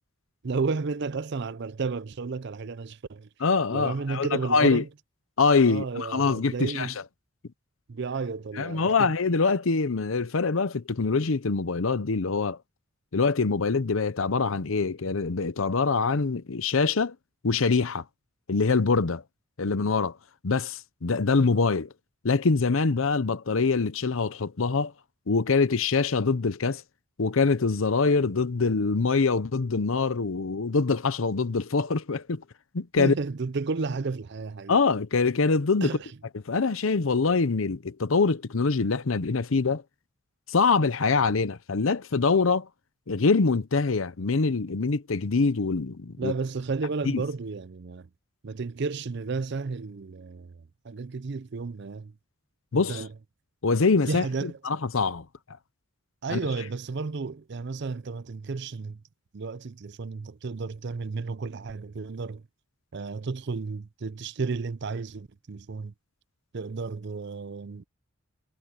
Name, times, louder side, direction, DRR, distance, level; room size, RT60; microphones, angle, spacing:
voice 1, 0.4-3.3 3.7-4.9 5.7-7.0 7.9-9.1 33.0-34.8 35.8-36.1 46.2-48.1 48.4-50.6 50.8-52.1 52.7-53.1 54.1-54.6 56.2-59.0 59.3-62.4 62.9-65.9 66.5-67.8, right 4 dB, 55° right, 0.5 m, -32 dB
voice 2, 3.4-4.8 5.4-6.9 8.6-12.6 13.1-17.1 17.4-18.0 18.5-19.2 19.6-20.2 20.4-21.9 22.2-24.9 25.3-26.8 27.2-32.4 32.7-33.1 34.7-36.0 36.3-39.8 40.5-42.7 43.1-46.3 47.1-47.2 52.7-53.0 53.6-55.2 56.3-56.4, left 4 dB, 75° left, 0.7 m, -24 dB
head